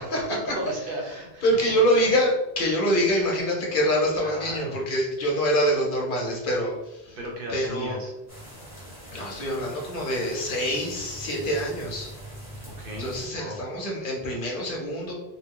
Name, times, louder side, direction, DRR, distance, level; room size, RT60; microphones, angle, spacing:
voice 1, 0.0-1.4 3.1-3.3 4.2-4.8 7.2-8.1 12.8-13.7, right 1 dB, 60° right, 0 dB, 0.8 m, -35 dB
voice 2, 1.4-7.2 7.5-8.0 9.1-12.1 13.0-15.1, equal, 55° left, -2 dB, 0.8 m, -25 dB
sound 1, 8.3-13.3, right 1 dB, 5° right, 1.0 m, -42 dB
2.6 x 2.1 x 3.5 m, 0.92 s
omnidirectional pair, 1.1 m